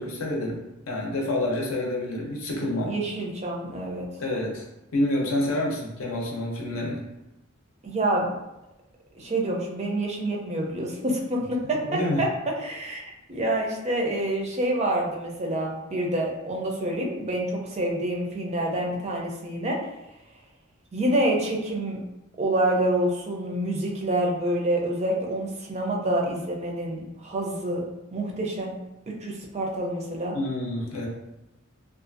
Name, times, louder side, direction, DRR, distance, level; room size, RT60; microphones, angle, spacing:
voice 1, 0.0-2.9 4.2-4.6 4.9-7.0 11.9-12.2 30.3-31.1, left 1 dB, 75° left, -1 dB, 0.6 m, -28 dB
voice 2, 2.6-4.1 7.8-8.3 9.1-19.8 20.9-22.0 22.4-27.8 28.1-28.8 29.1-30.4, right 1 dB, 30° right, -1 dB, 0.4 m, -27 dB
2.5 x 2.3 x 2.5 m, 0.93 s
head